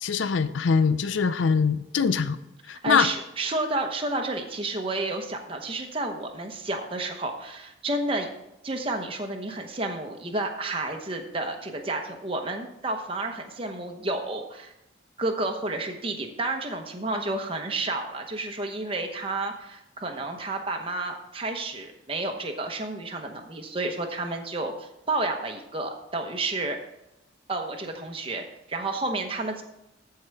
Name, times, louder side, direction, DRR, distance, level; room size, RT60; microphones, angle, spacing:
voice 1, 0.0-2.4 2.7-3.1, left 5 dB, 85° left, 13 dB, 0.5 m, -23 dB
voice 2, 2.8-8.3 8.6-14.7 15.2-26.8 27.5-29.6, right 2 dB, 30° right, 3 dB, 1.0 m, -31 dB
14.0 x 4.8 x 4.7 m, 0.88 s
head